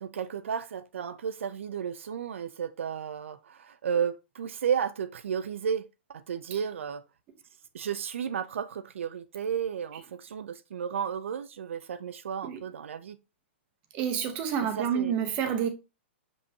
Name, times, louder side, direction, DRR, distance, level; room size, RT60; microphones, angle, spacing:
voice 1, 0.0-7.0 7.7-13.2 14.8-15.2, right 7 dB, 80° right, 0.6 m, -33 dB
voice 2, 13.9-15.7, right 8 dB, 20° right, 0.8 m, -28 dB
6.6 x 5.5 x 2.8 m
hypercardioid pair, 180°, 7 cm